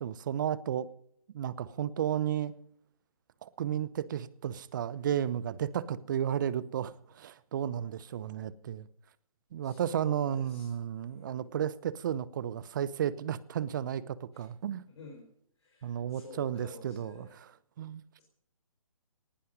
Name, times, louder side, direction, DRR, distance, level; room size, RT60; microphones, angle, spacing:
voice 1, 0.0-0.9 1.3-2.5 3.4-8.9 9.5-14.8 15.8-18.0, right 9 dB, 35° right, 0.8 m, -33 dB
voice 2, 9.6-10.7 11.0-11.5 14.3-14.5 15.0-15.2 15.6-17.3, left 3 dB, 50° left, 4.4 m, -51 dB
19.0 x 11.5 x 5.2 m
figure-of-eight pair, 140°, 18 cm